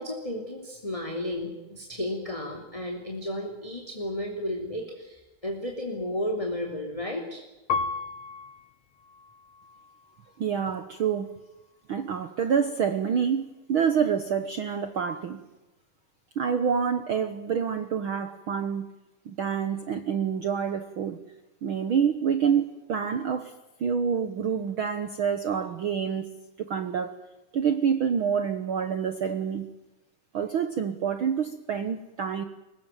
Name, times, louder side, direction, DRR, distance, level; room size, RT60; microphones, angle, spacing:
voice 1, 0.0-7.4, left 1 dB, 10° left, 2 dB, 2.8 m, -33 dB
Piano, 7.7-10.4 11.1-11.8, left 4 dB, 55° left, 2.2 m, -35 dB
voice 2, 10.4-11.3 11.9-15.4 16.3-18.9 19.2-21.2 21.6-23.5 23.8-26.3 26.6-27.2 27.5-29.7 30.3-32.4, right 7 dB, 60° right, 10 dB, 1.4 m, -27 dB
23.0 x 20.0 x 9.2 m, 1.1 s
omnidirectional pair, 3.6 m